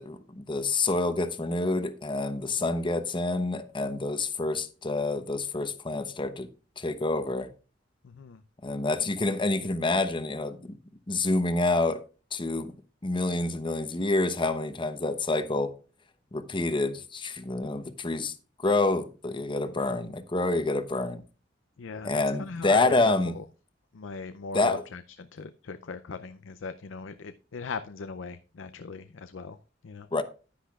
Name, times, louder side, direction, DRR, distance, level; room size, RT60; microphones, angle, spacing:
voice 1, 0.0-6.5 6.8-7.5 8.6-10.8 11.1-12.0 12.3-12.7 13.0-15.7 16.3-18.3 18.6-21.2 22.0-23.3 24.5-24.8 30.1-30.2, left 2 dB, 25° left, 0.9 m, -27 dB
voice 2, 8.0-8.4 21.8-23.4 23.9-29.6 29.8-30.1, left 4 dB, 85° left, 0.5 m, -39 dB
10.0 x 10.0 x 2.4 m
head